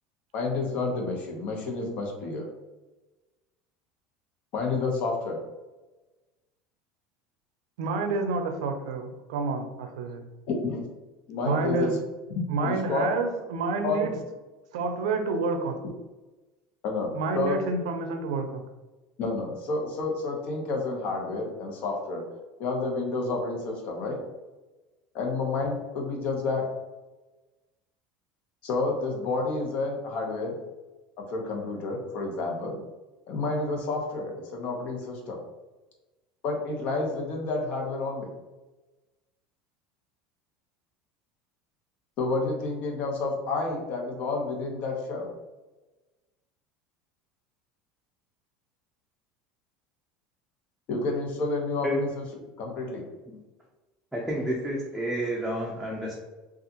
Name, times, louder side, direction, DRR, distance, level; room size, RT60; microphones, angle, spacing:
voice 1, 0.3-2.5 4.5-5.4 10.5-10.8 11.3-11.9 12.4-13.1 13.8-14.2 16.8-17.6 19.2-22.2 22.6-24.2 25.1-26.6 28.6-30.6 31.3-32.8 33.3-35.4 36.4-38.3 42.2-45.3 50.9-52.2 52.6-53.0, left 3 dB, 55° left, 1 dB, 0.9 m, -30 dB
voice 2, 7.8-10.2 11.4-12.0 12.5-14.1 14.7-15.8 17.1-18.6, right 3 dB, 85° right, 6 dB, 0.5 m, -29 dB
voice 3, 54.1-56.1, equal, 5° right, -4 dB, 0.6 m, -30 dB
3.5 x 2.4 x 2.8 m, 1.1 s
supercardioid pair, 120°, 3 cm